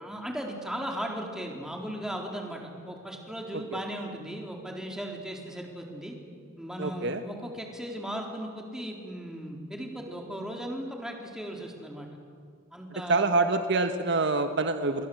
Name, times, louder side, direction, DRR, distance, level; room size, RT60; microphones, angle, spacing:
voice 1, 0.0-6.2 6.6-12.1 12.7-13.3, equal, 5° right, 1 dB, 4.0 m, -37 dB
voice 2, 6.8-7.2 13.1-15.1, right 3 dB, 60° right, 7 dB, 1.4 m, -26 dB
29.0 x 23.5 x 8.0 m, 2.3 s
head